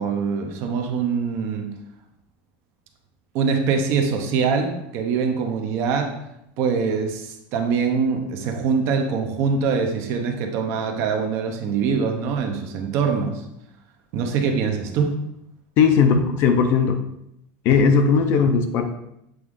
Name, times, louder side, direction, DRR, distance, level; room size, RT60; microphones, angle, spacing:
voice 1, 0.0-1.7 3.3-6.1 6.6-13.4 14.1-15.2, right 5 dB, 40° right, 5 dB, 0.7 m, -23 dB
voice 2, 15.8-17.0 17.6-18.9, left 6 dB, 35° left, 7 dB, 0.5 m, -18 dB
7.8 x 3.6 x 3.6 m, 0.81 s
supercardioid pair, 175°, 7 cm